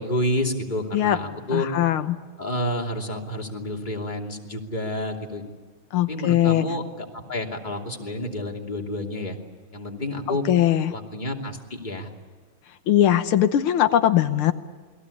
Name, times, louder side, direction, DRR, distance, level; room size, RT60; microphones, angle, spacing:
voice 1, 0.0-1.7 2.4-5.5 6.1-9.4 9.7-10.4 10.9-12.1, left 1 dB, 20° left, 0 dB, 3.0 m, -29 dB
voice 2, 1.5-2.2 5.9-6.6 10.5-10.9 12.9-14.5, left 11 dB, 90° left, 9 dB, 1.9 m, -20 dB
29.0 x 21.5 x 8.5 m, 1.5 s
omnidirectional pair, 2.3 m